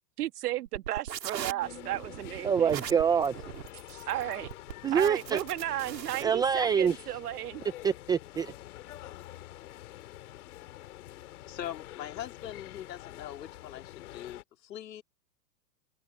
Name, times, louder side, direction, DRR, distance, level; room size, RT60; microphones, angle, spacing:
voice 1, 0.2-2.7 3.9-4.5 4.9-7.6, right 14 dB, 65° right, 1.6 m, -34 dB
sound 1, 0.7-6.2, right 9 dB, 85° right, 4.1 m, -40 dB
sound 2, 1.6-14.4, left 15 dB, 60° left, 3.8 m, -47 dB
voice 2, 2.4-3.3 4.8-5.4 6.2-6.9 7.8-8.5, right 7 dB, 10° right, 0.5 m, -25 dB
voice 3, 11.5-15.0, left 11 dB, 75° left, 3.0 m, -42 dB
open air
hypercardioid pair, 140°, 50 cm